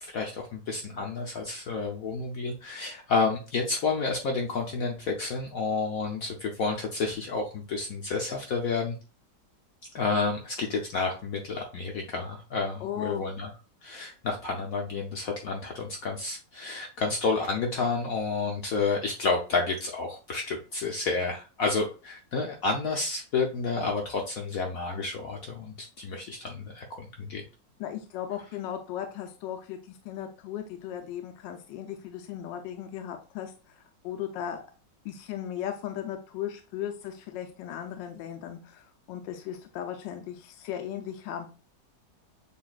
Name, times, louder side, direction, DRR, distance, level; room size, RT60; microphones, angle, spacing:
voice 1, 0.0-9.0 9.9-13.5 13.8-27.4, left 4 dB, 60° left, 1 dB, 1.0 m, -30 dB
voice 2, 12.8-13.3 27.8-33.8 34.0-34.6 35.0-41.5, left 10 dB, 80° left, 5 dB, 1.3 m, -37 dB
7.0 x 2.6 x 2.3 m, 0.34 s
omnidirectional pair, 1.9 m